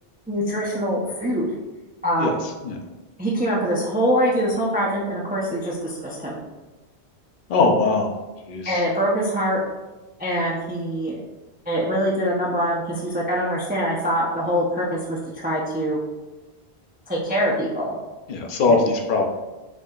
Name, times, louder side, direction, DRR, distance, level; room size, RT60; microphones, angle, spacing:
voice 1, 0.3-1.5 2.0-2.4 3.2-6.4 8.7-9.6 10.2-11.2 11.7-16.0 17.1-18.0 18.7-18.9, equal, 15° right, -5 dB, 0.3 m, -24 dB
voice 2, 7.5-8.1 8.5-8.8 18.3-19.2, left 3 dB, 55° left, 2 dB, 0.7 m, -20 dB
4.7 x 2.7 x 2.3 m, 1.1 s
omnidirectional pair, 1.1 m